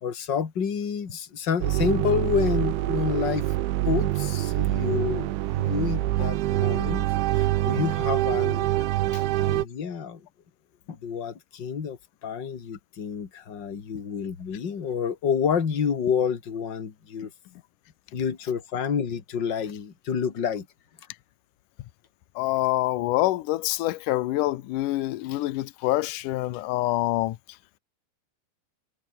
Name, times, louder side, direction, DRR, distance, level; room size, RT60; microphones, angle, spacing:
voice 1, 0.0-3.5 3.9-7.1 7.3-8.7 9.4-10.2 10.9-17.3 18.1-20.7, left 7 dB, 35° left, 2.0 m, -29 dB
sound 1, 1.6-9.6, right 16 dB, 90° right, 3.6 m, -25 dB
voice 2, 22.4-27.4, left 17 dB, 85° left, 1.8 m, -26 dB
omnidirectional pair, 5.2 m